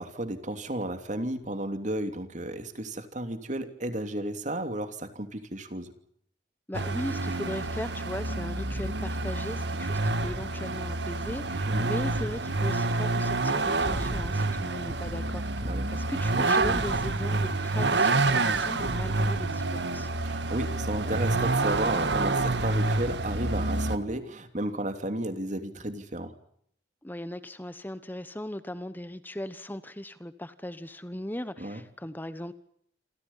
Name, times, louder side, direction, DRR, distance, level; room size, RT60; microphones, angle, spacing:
voice 1, 0.0-5.9 11.7-11.9 15.6-15.9 20.2-26.3 31.6-31.8, right 1 dB, 45° right, 8 dB, 3.0 m, -33 dB
voice 2, 6.7-20.1 27.0-32.5, left 1 dB, 10° left, 12 dB, 1.0 m, -38 dB
Vehicle, 6.7-24.0, right 2 dB, 85° right, 1.9 m, -28 dB
28.0 x 27.0 x 5.7 m, 0.69 s
head